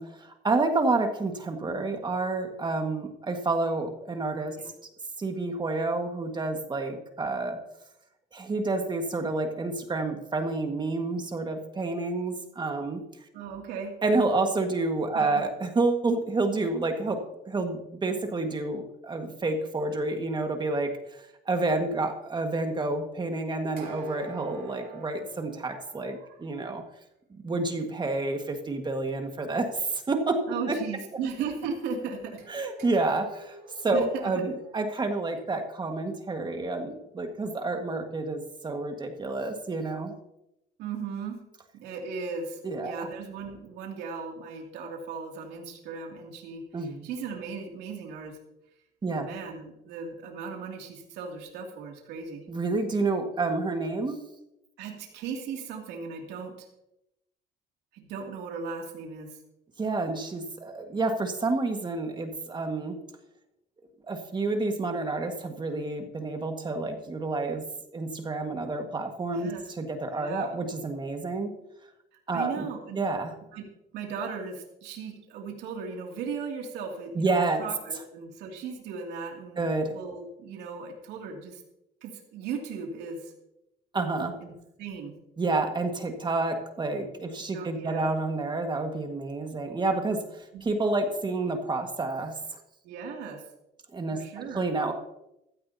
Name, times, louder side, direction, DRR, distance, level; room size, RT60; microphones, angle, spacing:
voice 1, 0.0-4.6 5.2-7.6 8.3-13.0 14.0-17.2 17.5-26.8 27.4-30.4 30.7-30.8 32.5-33.6 33.8-40.1 42.6-43.1 46.7-47.0 49.0-49.3 52.5-54.2 59.8-62.9 64.1-67.6 67.9-71.5 72.3-72.7 73.0-73.3 77.1-77.6 79.6-79.9 83.9-84.3 85.4-92.3 93.9-94.2 94.5-94.9, right 3 dB, 25° right, 4 dB, 1.7 m, -29 dB
voice 2, 13.3-13.9 15.1-15.3 30.5-32.4 33.9-34.0 40.8-41.4 41.7-48.4 49.1-52.4 54.8-56.7 57.9-59.3 69.3-69.6 70.1-70.5 72.3-73.0 73.5-73.7 73.9-81.6 82.0-83.3 84.4-84.5 84.8-85.1 87.2-87.3 87.5-88.1 90.5-90.7 92.8-93.4 94.1-94.6, right 5 dB, 90° right, 1 dB, 2.6 m, -37 dB
sound 1, 23.8-26.4 32.4-36.4, right 2 dB, 65° right, 4.0 m, -47 dB
15.5 x 13.5 x 2.8 m, 0.86 s
cardioid pair, 110°, 17 cm